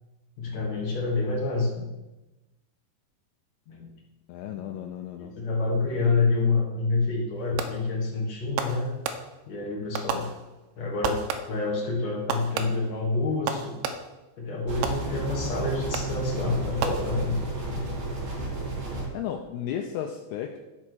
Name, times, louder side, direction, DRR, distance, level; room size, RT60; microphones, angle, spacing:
voice 1, 0.4-1.9 3.7-3.9 5.2-8.9 9.5-10.3 10.8-13.7 14.4-17.9, left 3 dB, 55° left, -2 dB, 2.1 m, -28 dB
voice 2, 4.3-5.3 19.1-20.6, left 9 dB, 80° left, 4 dB, 2.3 m, -34 dB
Fireworks, 7.6-8.0 8.6-9.6 9.9-10.7 11.0-11.7 12.3-14.3 14.8-15.5 15.9-16.3 16.8-17.6, right 6 dB, 80° right, 2.7 m, -33 dB
sound 1, 14.7-19.1, right 2 dB, 45° right, 3.7 m, -32 dB
12.0 x 4.4 x 6.2 m, 1.0 s
omnidirectional pair, 4.9 m